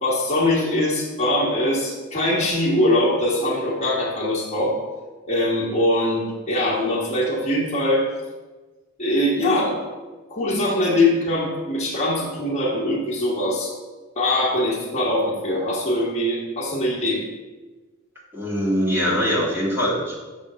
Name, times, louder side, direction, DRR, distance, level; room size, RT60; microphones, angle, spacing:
voice 1, 0.0-4.7 5.3-8.0 9.0-9.8 10.3-13.7 14.2-17.2, left 1 dB, 35° left, -5 dB, 1.2 m, -22 dB
voice 2, 18.3-20.2, equal, 10° right, -6 dB, 1.6 m, -22 dB
6.5 x 3.6 x 6.1 m, 1.3 s
head